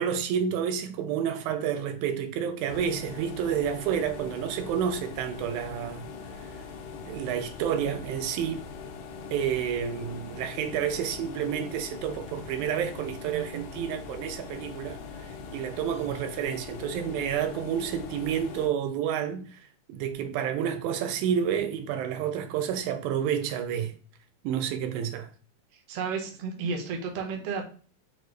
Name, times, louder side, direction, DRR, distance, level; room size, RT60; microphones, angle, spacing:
voice 1, 0.0-6.1 6.4-6.6 7.1-8.6 9.3-19.6 19.9-23.9 24.4-25.3, right 8 dB, 90° right, 2.0 m, -30 dB
sound 1, 2.7-18.7, left 5 dB, 80° left, 1.9 m, -42 dB
voice 2, 25.9-27.7, right 5 dB, 65° right, 1.7 m, -32 dB
6.1 x 2.1 x 3.2 m
omnidirectional pair, 3.4 m